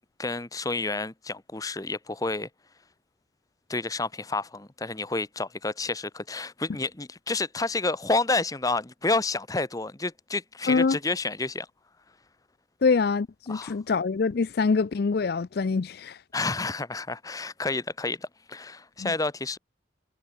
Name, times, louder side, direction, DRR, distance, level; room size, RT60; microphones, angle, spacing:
voice 1, 0.2-2.5 3.7-11.7 13.5-13.8 16.3-19.6, left 3 dB, 20° left, 0.9 m, -29 dB
voice 2, 10.7-11.0 12.8-16.2 19.0-19.1, left 4 dB, 55° left, 0.4 m, -25 dB
head